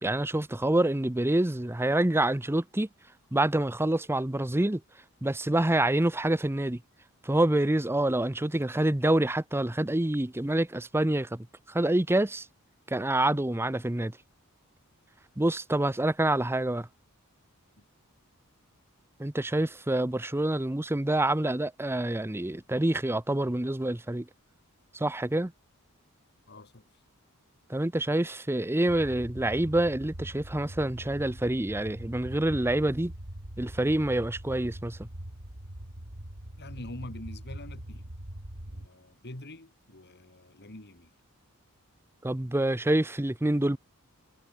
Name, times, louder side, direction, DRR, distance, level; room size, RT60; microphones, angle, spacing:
voice 1, 0.0-2.9 3.3-4.8 5.2-6.8 7.2-12.5 12.9-14.2 15.4-16.9 19.2-24.3 24.9-25.5 27.7-33.1 33.6-35.1 42.2-43.8, right 1 dB, 10° right, 0.7 m, -27 dB
voice 2, 26.5-26.9 36.6-38.1 38.7-41.1, left 1 dB, 50° left, 3.2 m, -45 dB
sound 1, 28.9-38.9, right 1 dB, 60° right, 3.4 m, -42 dB
head